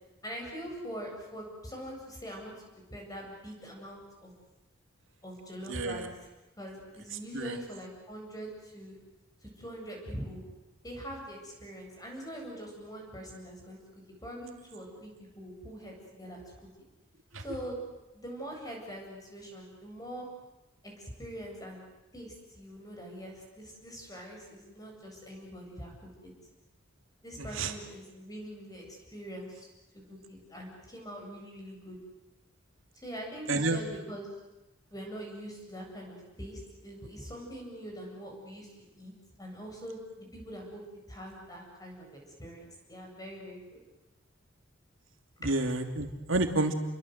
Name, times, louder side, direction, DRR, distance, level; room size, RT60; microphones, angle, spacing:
voice 1, 0.2-2.5 2.9-4.3 5.2-6.1 6.6-9.0 9.4-10.4 10.8-13.8 14.2-15.1 15.4-16.4 17.4-17.8 18.1-20.3 20.8-21.9 22.1-25.9 26.2-26.3 27.2-29.7 30.1-32.0 33.0-34.3 34.9-38.7 39.0-39.1 39.4-43.6, equal, 20° left, 0 dB, 8.0 m, -43 dB
voice 2, 5.7-6.1 7.3-7.6 17.3-17.4 27.4-27.7 33.5-33.8 45.4-46.7, right 2 dB, 70° right, 5 dB, 2.7 m, -30 dB
30.0 x 23.0 x 8.1 m, 1.0 s
head